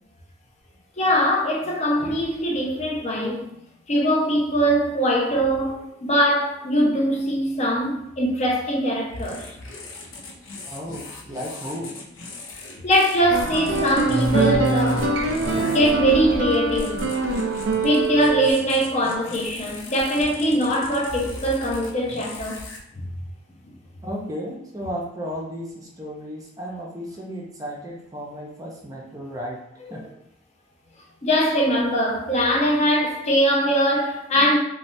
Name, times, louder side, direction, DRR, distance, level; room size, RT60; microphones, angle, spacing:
voice 1, 1.0-3.5 3.9-9.5 12.8-15.1 15.5-17.0 17.8-22.6 23.0-23.1 29.9-30.0 31.2-34.6, equal, 35° left, 0.5 m, -22 dB
sound 1, 9.1-22.8, left 2 dB, 80° left, 0.6 m, -39 dB
voice 2, 10.7-11.9 24.0-29.6 29.9-30.0, equal, 20° right, 0.5 m, -34 dB
sound 2, 13.3-18.5, right 2 dB, 85° right, 0.5 m, -23 dB
3.2 x 2.1 x 2.6 m
head